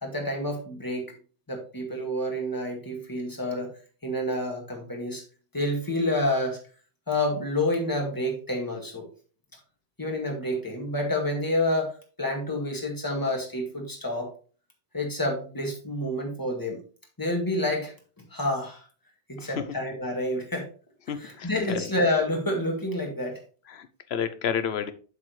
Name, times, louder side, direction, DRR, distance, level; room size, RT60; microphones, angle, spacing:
voice 1, 0.0-1.1 1.5-3.7 4.0-5.2 5.5-6.6 7.1-9.1 10.0-14.3 14.9-16.8 17.2-17.9 18.3-18.9 19.3-20.7 21.2-23.4, left 1 dB, 15° left, 2.1 m, -28 dB
voice 2, 19.4-19.8 21.1-21.9 23.7-24.9, left 7 dB, 65° left, 0.9 m, -31 dB
7.5 x 7.3 x 3.2 m
omnidirectional pair, 1.2 m